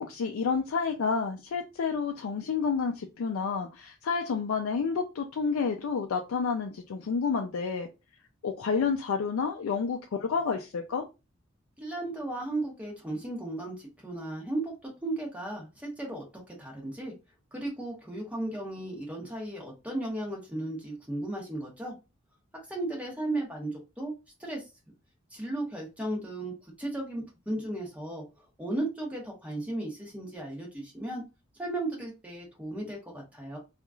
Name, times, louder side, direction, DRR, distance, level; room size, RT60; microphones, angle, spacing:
voice 1, 0.0-7.9 8.4-11.0, left 5 dB, 85° left, 0.4 m, -29 dB
voice 2, 11.8-17.1 17.5-21.9 22.7-24.1 24.4-24.7 25.3-28.2 28.6-31.2 31.6-33.6, right 1 dB, 5° right, 1.0 m, -35 dB
3.0 x 2.4 x 2.3 m
head